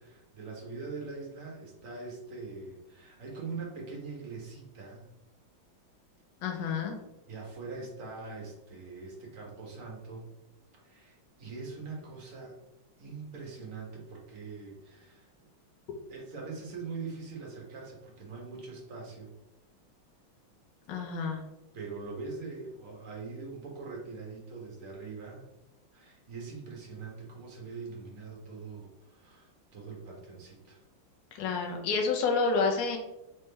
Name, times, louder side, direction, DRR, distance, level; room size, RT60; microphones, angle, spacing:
voice 1, 0.0-5.1 6.5-6.7 7.3-10.3 10.8-12.6 13.0-15.3 16.1-19.3 21.7-25.5 25.9-30.8, right 4 dB, 45° right, -1 dB, 1.2 m, -42 dB
voice 2, 6.4-6.9 20.9-21.4 31.3-33.0, left 4 dB, 65° left, 1 dB, 1.4 m, -29 dB
4.1 x 3.7 x 3.3 m, 0.95 s
omnidirectional pair, 2.3 m